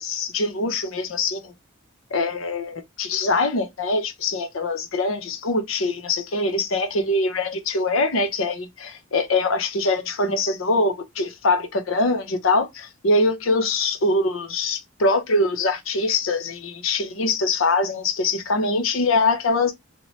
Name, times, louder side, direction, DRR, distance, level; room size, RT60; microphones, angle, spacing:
voice 1, 0.0-1.5 2.1-19.7, left 2 dB, 80° left, 0.7 m, -23 dB
2.9 x 2.1 x 3.0 m
head